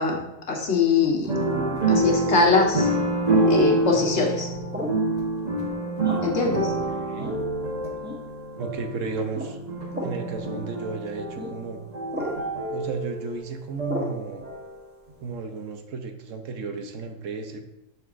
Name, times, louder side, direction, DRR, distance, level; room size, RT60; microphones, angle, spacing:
voice 1, 0.0-1.3 1.9-2.9 3.5-4.5 6.2-6.7, left 4 dB, 60° left, 1 dB, 1.5 m, -22 dB
sound 1, 1.2-14.9 15.2-15.3, right 2 dB, 35° right, 1.1 m, -27 dB
sound 2, 1.5-1.9 3.3-3.6 4.7-5.1 6.0-6.4 7.2-7.4 8.0-8.2 9.3-9.5 9.9-10.2 11.4-11.5 12.1-12.4 13.9-14.2, equal, 10° right, 1.0 m, -33 dB
voice 2, 6.5-7.3 8.6-9.6 10.0-11.8 12.7-14.5 15.2-17.6, right 4 dB, 75° right, 5 dB, 1.1 m, -33 dB
9.2 x 6.0 x 2.5 m, 0.85 s
omnidirectional pair, 1.4 m